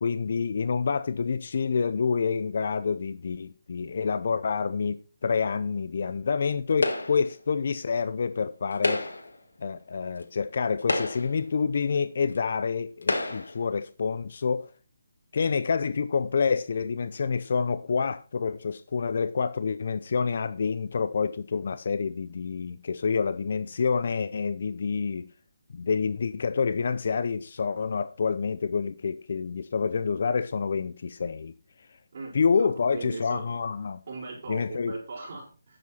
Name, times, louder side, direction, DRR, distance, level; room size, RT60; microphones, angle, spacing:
voice 1, 0.0-9.0 9.6-14.7 15.3-25.3 25.7-31.5 32.3-34.0 34.5-35.0, left 5 dB, 55° left, 0.6 m, -28 dB
sound 1, 6.8-7.3 8.7-9.4 10.2-10.3 10.8-11.5 12.3-12.4 13.0-13.6, left 2 dB, 90° left, 2.0 m, -29 dB
voice 2, 32.1-33.5 34.1-35.8, right 3 dB, 50° right, 4.4 m, -39 dB
11.0 x 7.6 x 4.2 m
hypercardioid pair, 160°, 0 cm